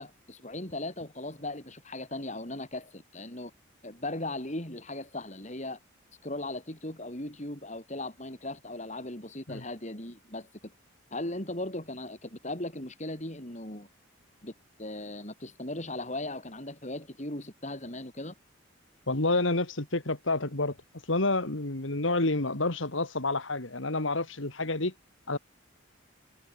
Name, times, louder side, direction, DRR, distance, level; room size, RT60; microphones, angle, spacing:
voice 1, 0.0-3.5 3.8-5.8 6.2-10.7 11.1-13.9 14.4-14.5 14.8-18.3, left 1 dB, 35° left, 4.8 m, -38 dB
voice 2, 19.1-20.7 21.1-24.9 25.3-25.4, left 2 dB, 75° left, 2.6 m, -29 dB
head